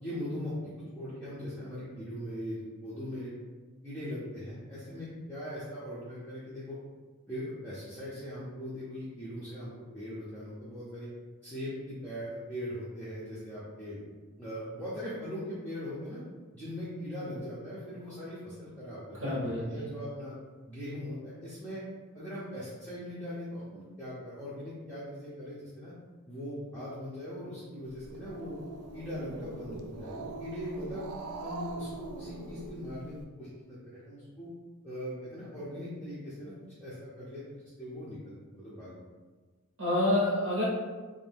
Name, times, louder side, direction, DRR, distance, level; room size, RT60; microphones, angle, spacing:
voice 1, 0.0-3.3 3.8-6.8 7.3-11.1 11.4-14.0 14.4-16.2 16.5-20.3 20.7-21.8 22.1-25.9 26.3-28.6 28.9-31.1 31.4-34.5 34.8-38.9, equal, 5° left, -11 dB, 0.5 m, -40 dB
voice 2, 19.2-19.9 39.8-40.6, left 1 dB, 70° right, -6 dB, 0.8 m, -28 dB
Growling, 27.9-33.2, right 3 dB, 85° right, 0.3 m, -42 dB
2.6 x 2.1 x 3.4 m, 1.4 s
head